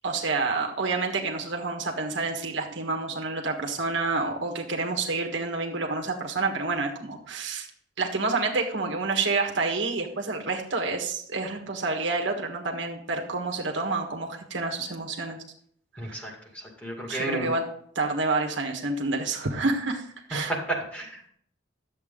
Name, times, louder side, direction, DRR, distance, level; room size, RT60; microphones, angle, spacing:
voice 1, 0.0-7.7 8.0-15.4 16.0-16.3 17.1-17.6 17.9-20.5, right 3 dB, 65° right, 2 dB, 1.5 m, -28 dB
voice 2, 16.0-17.5 20.5-21.3, right 2 dB, 5° left, -1 dB, 2.2 m, -32 dB
11.5 x 7.8 x 3.8 m, 0.64 s
head